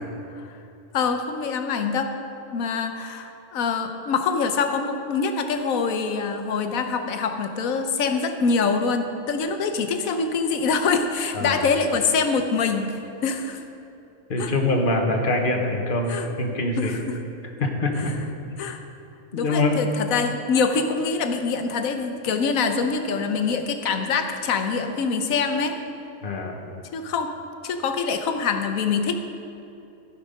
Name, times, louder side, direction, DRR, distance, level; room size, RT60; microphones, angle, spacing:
voice 1, 0.9-2.2 2.5-13.6 14.4-14.5 16.1-16.3 16.8-17.2 18.0-18.1 18.6-18.8 19.4-25.8 26.9-27.3 27.6-29.1, left 5 dB, 85° left, 7 dB, 1.2 m, -25 dB
voice 2, 14.3-17.0 17.6-18.1 19.3-19.8 26.2-26.6, left 2 dB, 40° left, 3 dB, 1.3 m, -24 dB
15.0 x 5.9 x 5.2 m, 2.8 s
omnidirectional pair, 1.4 m